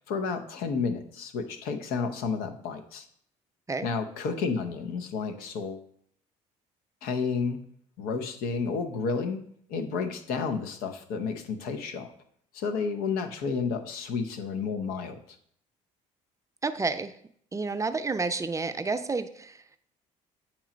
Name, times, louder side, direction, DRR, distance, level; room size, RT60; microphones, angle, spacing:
voice 1, 0.0-3.1 3.8-5.9 7.0-7.6 8.0-9.4 9.7-12.1 12.5-15.2, left 5 dB, 75° left, 7 dB, 0.9 m, -31 dB
voice 2, 16.6-17.1 17.5-19.8, right 4 dB, 20° right, 10 dB, 0.5 m, -30 dB
8.5 x 3.1 x 5.1 m, 0.64 s
supercardioid pair, 75°, 15 cm